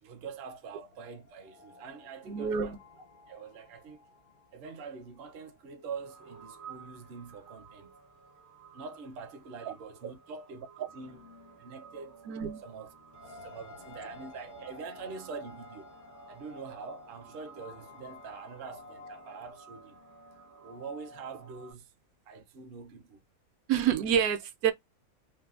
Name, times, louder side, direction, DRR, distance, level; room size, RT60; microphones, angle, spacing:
voice 1, 0.0-2.7 3.3-4.0 4.5-7.9 8.7-10.7 10.9-11.2 11.6-12.1 12.6-12.9 13.3-15.9 16.3-20.0 20.6-21.9 22.3-23.2, right 5 dB, 55° right, 0.7 m, -44 dB
sound 1, 0.8-6.4 6.8-6.9 13.1-19.5, left 3 dB, 50° left, 0.6 m, -54 dB
voice 2, 2.3-2.8 12.3-12.6 23.7-24.7, right 8 dB, 80° right, 1.1 m, -28 dB
sound 2, 5.9-21.7, right 3 dB, 25° right, 0.4 m, -52 dB
3.2 x 2.1 x 2.3 m
omnidirectional pair, 1.5 m